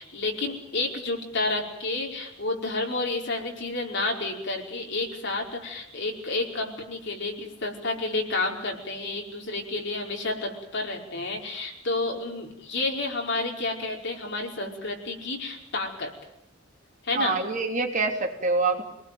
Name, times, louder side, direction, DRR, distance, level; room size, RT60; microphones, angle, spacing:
voice 1, 0.0-16.1 17.0-17.4, left 2 dB, 55° left, 1 dB, 5.0 m, -30 dB
voice 2, 17.1-18.8, right 3 dB, 40° right, 3 dB, 3.1 m, -25 dB
26.5 x 19.5 x 9.2 m, 0.83 s
head